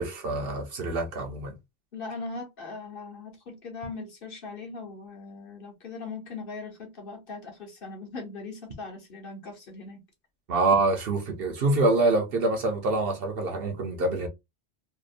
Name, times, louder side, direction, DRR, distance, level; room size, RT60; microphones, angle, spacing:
voice 1, 0.0-1.5 10.5-14.3, right 2 dB, 60° right, 0.8 m, -25 dB
voice 2, 1.9-10.0, left 3 dB, 55° left, 0.9 m, -40 dB
2.8 x 2.1 x 2.4 m
omnidirectional pair, 1.2 m